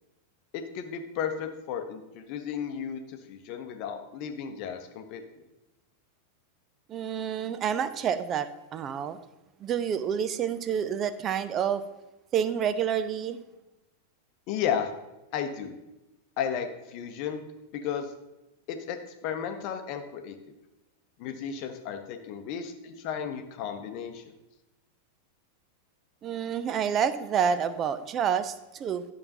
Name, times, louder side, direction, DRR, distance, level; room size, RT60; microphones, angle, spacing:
voice 1, 0.5-5.4 14.5-14.9 15.3-15.7 16.4-17.4 17.7-18.1 18.7-20.4 21.2-24.2, left 8 dB, 45° left, 6 dB, 0.8 m, -34 dB
voice 2, 6.9-9.2 9.6-11.9 12.3-13.4 26.2-29.0, right 8 dB, 30° right, 14 dB, 0.5 m, -28 dB
10.5 x 6.5 x 2.8 m, 0.98 s
figure-of-eight pair, 90°, 0 cm